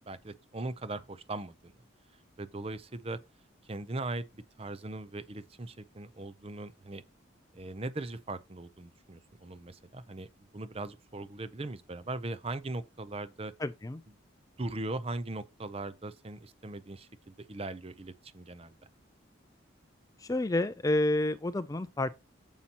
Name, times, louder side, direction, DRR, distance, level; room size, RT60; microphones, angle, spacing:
voice 1, 0.1-1.7 2.4-3.2 3.6-7.0 7.5-10.3 10.5-13.5 14.6-18.8, right 2 dB, 30° right, 0.6 m, -39 dB
voice 2, 13.6-14.0 20.2-22.1, left 1 dB, 15° left, 0.4 m, -29 dB
9.6 x 7.3 x 2.9 m
head